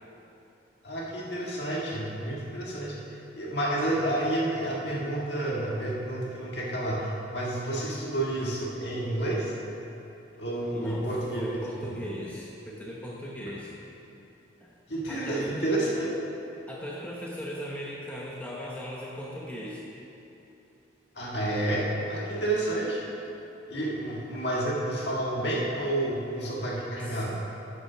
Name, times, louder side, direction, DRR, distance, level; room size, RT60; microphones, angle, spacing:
voice 1, 0.8-9.5 10.4-11.4 11.8-11.9 14.9-16.1 21.2-23.0 23.7-27.3, right 1 dB, 60° left, -5 dB, 1.9 m, -30 dB
voice 2, 10.7-13.7 14.6-14.7 15.1-15.6 16.7-19.8 27.0-27.2, equal, 10° left, -5 dB, 0.9 m, -38 dB
9.7 x 6.0 x 6.0 m, 2.9 s
head